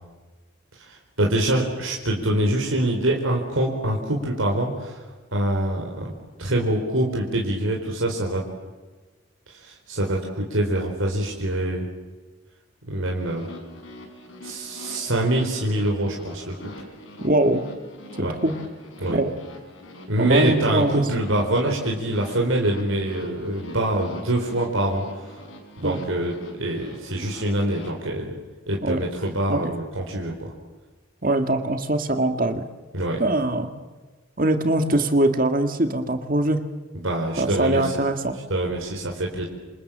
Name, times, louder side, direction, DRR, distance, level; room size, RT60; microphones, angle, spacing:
voice 1, 0.8-5.0 5.3-8.5 9.5-11.9 12.9-13.5 14.4-16.7 18.2-18.3 19.0-19.2 20.1-25.3 25.8-28.3 28.7-30.5 32.9-33.2 36.9-37.9 38.5-39.5, right 1 dB, 80° right, 0 dB, 4.4 m, -25 dB
sound 1, 13.2-27.9, left 1 dB, 80° left, 6.7 m, -43 dB
voice 2, 17.2-17.6 18.2-18.5 19.1-19.3 20.2-21.0 25.8-26.0 28.8-29.0 29.5-29.6 31.2-32.6 33.2-33.7 34.4-36.6 37.4-38.3, right 1 dB, 40° right, 7 dB, 2.0 m, -22 dB
28.0 x 27.5 x 7.6 m, 1.3 s
head